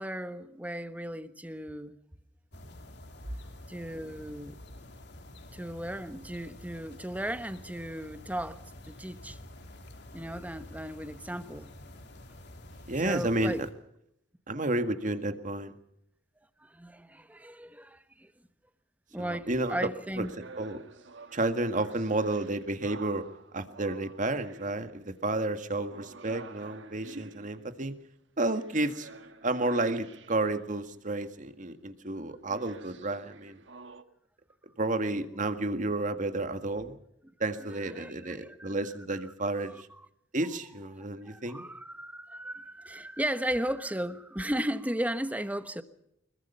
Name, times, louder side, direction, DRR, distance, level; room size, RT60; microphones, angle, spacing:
voice 1, 0.0-2.0 3.7-4.6 5.5-8.6 8.9-9.4 10.1-11.7 13.0-13.6 14.5-14.6 16.6-18.3 19.1-20.3 37.6-38.7 39.6-39.8 41.2-45.8, right 1 dB, 10° right, 1.3 m, -36 dB
sound 1, 2.5-13.7, left 1 dB, 65° left, 3.3 m, -49 dB
voice 2, 12.9-13.5 14.5-15.7 19.2-19.9 20.2-20.3 20.6-20.8 21.3-23.3 23.5-28.0 28.4-29.1 29.4-33.6 34.8-37.0 37.4-39.7 40.3-41.6, right 2 dB, 45° right, 1.8 m, -31 dB
sound 2, 20.2-25.3 25.9-30.7 32.4-34.0, right 3 dB, 75° right, 1.6 m, -50 dB
25.0 x 22.0 x 5.7 m
head